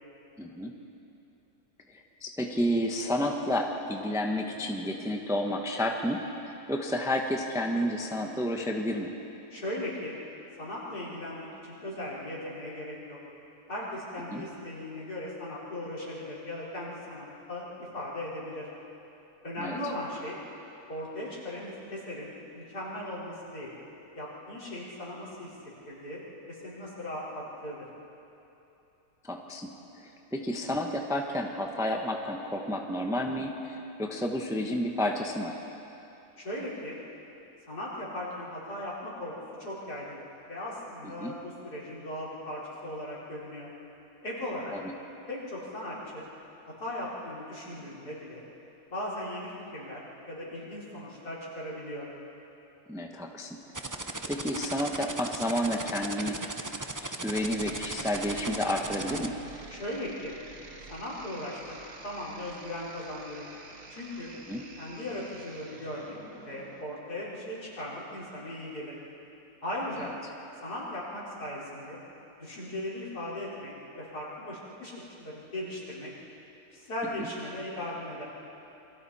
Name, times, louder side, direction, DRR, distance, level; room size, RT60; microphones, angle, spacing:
voice 1, 0.4-0.7 1.9-9.1 14.3-14.5 19.6-19.8 29.2-29.7 30.0-35.5 41.2-41.3 44.7-44.9 52.9-53.6 54.3-56.4 57.0-59.4 64.5-64.6, equal, ahead, 1 dB, 1.1 m, -31 dB
voice 2, 9.5-10.1 10.6-13.2 13.7-18.7 19.4-20.4 20.9-23.7 24.1-25.5 25.9-26.2 26.5-27.9 36.4-37.0 37.7-39.3 39.6-40.2 40.5-43.7 44.2-44.7 45.3-46.2 46.8-48.4 48.9-52.1 59.7-60.3 60.9-61.8 62.0-63.5 63.9-64.3 64.8-69.0 69.6-70.1 70.6-72.0 72.4-76.1 76.7-78.2, left 1 dB, 65° left, -7 dB, 5.2 m, -38 dB
sound 1, 53.7-59.3, right 2 dB, 30° right, 0.3 m, -36 dB
sound 2, 57.3-66.8, right 3 dB, 75° right, 2.3 m, -48 dB
28.0 x 24.0 x 4.3 m, 2.9 s
omnidirectional pair, 1.8 m